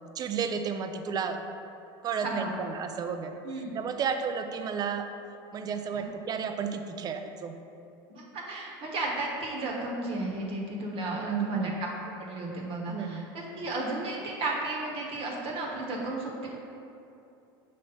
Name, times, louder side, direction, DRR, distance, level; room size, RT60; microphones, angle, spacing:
voice 1, 0.1-1.4 2.0-3.4 3.7-5.1 5.5-7.5 11.1-11.8 12.9-13.2, right 6 dB, 30° right, 7 dB, 0.4 m, -32 dB
voice 2, 2.2-2.5 3.4-3.7 5.9-6.1 8.1-11.9 12.2-16.6, right 2 dB, 50° right, -2 dB, 1.1 m, -34 dB
5.5 x 3.1 x 5.4 m, 2.7 s
supercardioid pair, 105°, 13 cm